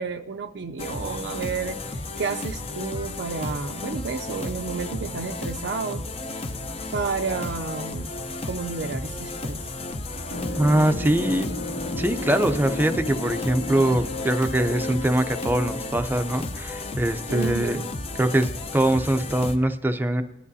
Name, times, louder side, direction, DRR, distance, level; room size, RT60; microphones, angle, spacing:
voice 1, 0.0-6.0 6.9-8.1 8.4-9.6 17.3-17.9, right 5 dB, 80° right, 4 dB, 0.5 m, -31 dB
sound 1, 0.8-19.6, left 2 dB, 35° left, 0.7 m, -33 dB
sound 2, 10.3-16.0, left 1 dB, 75° left, 1.7 m, -33 dB
voice 2, 10.5-11.5 12.0-17.8 18.2-20.2, right 1 dB, 10° right, 7 dB, 0.5 m, -23 dB
18.5 x 11.0 x 2.7 m, 0.94 s
head